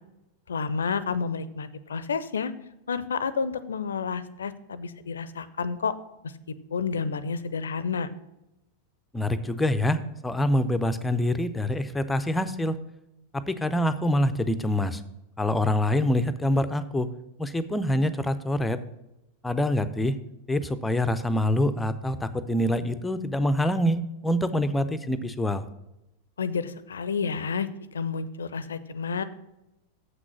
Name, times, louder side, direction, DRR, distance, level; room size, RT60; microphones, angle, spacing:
voice 1, 0.5-2.5 2.9-5.9 6.7-8.1 26.4-29.2, left 5 dB, 70° left, 15 dB, 0.5 m, -30 dB
voice 2, 9.1-12.8 13.3-15.0 15.4-17.1 17.4-18.8 19.4-20.2 20.5-25.6, left 1 dB, 10° left, 11 dB, 0.5 m, -25 dB
7.7 x 6.0 x 6.0 m, 0.93 s
figure-of-eight pair, 90°, 0 cm